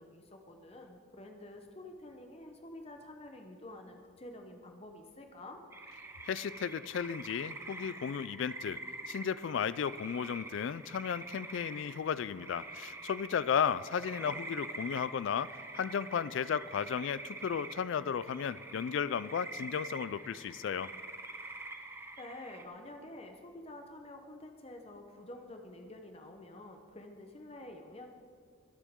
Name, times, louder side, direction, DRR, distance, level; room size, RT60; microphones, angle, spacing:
voice 1, 0.0-5.6 14.2-14.6 22.2-28.1, left 1 dB, 30° left, 4 dB, 0.8 m, -49 dB
sound 1, 5.7-22.7, right 2 dB, 10° right, 0.5 m, -46 dB
voice 2, 6.2-8.8 9.1-20.9, left 7 dB, 60° left, 16 dB, 0.3 m, -34 dB
22.0 x 8.2 x 3.6 m, 2.1 s
head